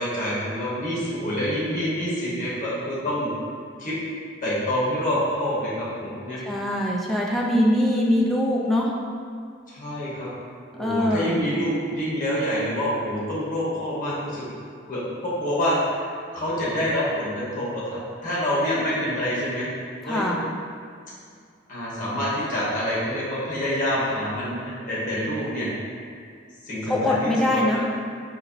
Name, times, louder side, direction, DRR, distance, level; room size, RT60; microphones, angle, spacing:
voice 1, 0.0-3.3 3.8-4.0 4.4-6.4 9.7-10.3 10.8-14.4 14.9-19.7 20.0-20.3 21.7-25.7 26.6-27.8, equal, 45° left, -8 dB, 1.1 m, -27 dB
voice 2, 6.4-8.9 10.7-11.4 20.1-20.4 26.8-27.8, left 1 dB, ahead, -4 dB, 0.4 m, -23 dB
4.1 x 2.9 x 2.6 m, 2.2 s
head